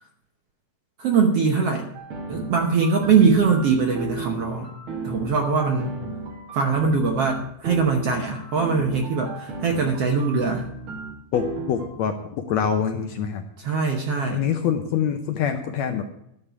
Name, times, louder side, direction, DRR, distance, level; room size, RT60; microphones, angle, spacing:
voice 1, 1.0-1.9 2.3-4.7 5.0-5.9 6.5-10.7 13.6-14.4, right 5 dB, 65° right, 2 dB, 1.6 m, -22 dB
sound 1, 1.9-11.9, right 3 dB, 50° right, 1.9 m, -35 dB
voice 2, 11.3-13.4 14.3-16.0, left 8 dB, 75° left, 6 dB, 1.7 m, -25 dB
12.0 x 5.5 x 8.2 m, 0.76 s
omnidirectional pair, 3.9 m